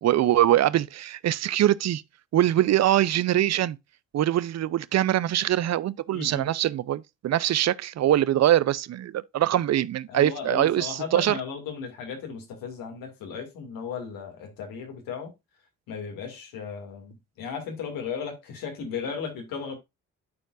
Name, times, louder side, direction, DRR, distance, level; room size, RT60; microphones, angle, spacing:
voice 1, 0.0-2.0 2.3-3.8 4.1-11.3, right 12 dB, 50° right, 0.6 m, -23 dB
voice 2, 6.1-6.5 10.1-15.3 15.9-19.7, left 6 dB, 80° left, 2.4 m, -35 dB
12.0 x 4.5 x 2.5 m
supercardioid pair, 55°, 34 cm